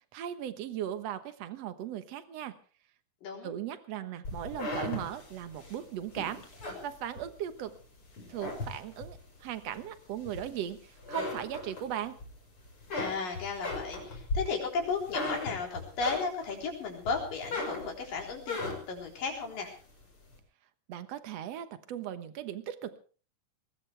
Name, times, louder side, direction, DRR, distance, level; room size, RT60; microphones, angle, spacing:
voice 1, 0.1-2.6 3.4-7.7 8.3-12.2 20.9-23.0, right 10 dB, 60° right, 10 dB, 2.1 m, -38 dB
voice 2, 3.2-3.5 13.0-19.7, left 4 dB, 85° left, 1 dB, 5.5 m, -34 dB
sound 1, 4.2-7.7 8.1-9.2 9.7-10.7 11.0-12.3 12.6-16.6 17.0-19.0, left 2 dB, 40° left, 5.8 m, -37 dB
20.5 x 19.0 x 3.4 m, 0.40 s
omnidirectional pair, 3.8 m